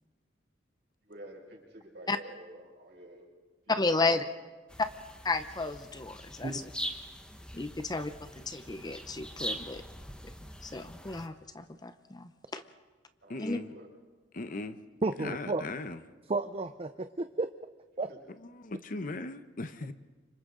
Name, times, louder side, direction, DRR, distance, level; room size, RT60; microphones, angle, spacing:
voice 1, 1.0-3.3 3.9-4.2 13.2-13.9 18.1-18.2, right 1 dB, 60° right, -1 dB, 5.5 m, -49 dB
voice 2, 3.7-4.2 5.2-6.6 7.5-9.8 10.6-12.6 13.4-13.6, left 3 dB, 20° left, 10 dB, 0.7 m, -33 dB
sound 1, 4.7-11.3, equal, 5° left, 1.2 m, -43 dB
voice 3, 13.3-13.7 14.3-14.8 15.2-16.0 18.4-19.9, left 2 dB, 45° left, 11 dB, 0.9 m, -38 dB
voice 4, 15.0-15.6 16.3-17.5 18.0-18.1, right 3 dB, 30° right, 9 dB, 0.5 m, -32 dB
29.5 x 26.0 x 3.9 m, 1.3 s
head